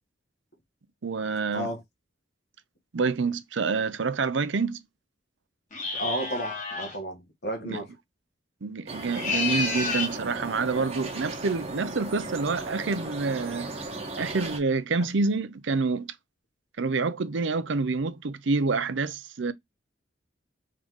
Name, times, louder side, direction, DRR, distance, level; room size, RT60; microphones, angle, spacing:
voice 1, 1.0-1.7 2.9-4.8 7.6-7.8 8.6-13.7 14.2-16.1 16.8-19.5, right 4 dB, 75° right, 0.6 m, -27 dB
sound 1, 5.7-7.0 9.0-10.2, left 4 dB, 40° left, 2.1 m, -30 dB
voice 2, 5.9-7.9, right 1 dB, 55° left, 1.5 m, -32 dB
sound 2, 8.9-14.6, right 2 dB, 30° right, 1.2 m, -37 dB
3.8 x 3.7 x 3.1 m
head